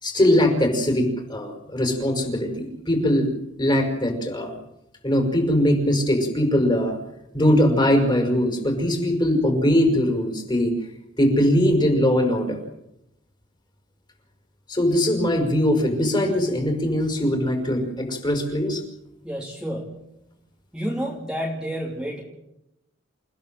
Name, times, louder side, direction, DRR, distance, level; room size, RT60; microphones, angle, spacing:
voice 1, 0.0-3.3 3.6-4.6 5.0-7.0 7.3-10.8 11.2-12.6 14.7-18.8, left 1 dB, 25° left, 3 dB, 5.7 m, -21 dB
voice 2, 19.2-20.0 20.7-22.2, equal, 5° right, -2 dB, 3.2 m, -30 dB
29.0 x 16.0 x 7.7 m, 0.86 s
head